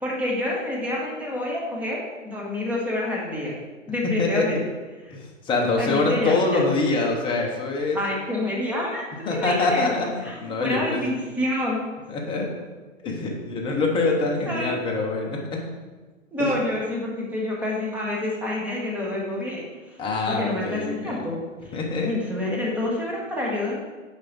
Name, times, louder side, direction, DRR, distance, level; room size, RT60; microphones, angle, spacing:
voice 1, 0.0-3.5 3.9-4.6 5.8-6.7 7.9-11.8 14.5-14.8 16.3-19.7 20.3-21.4 22.0-23.8, left 1 dB, 5° right, -3 dB, 1.1 m, -28 dB
voice 2, 4.2-4.6 5.1-8.0 9.3-11.2 12.1-12.5 13.0-15.6 16.4-16.5 20.0-21.2 21.7-22.1, left 3 dB, 15° left, 0 dB, 0.8 m, -25 dB
6.4 x 4.9 x 4.0 m, 1.3 s
hypercardioid pair, 130°, 39 cm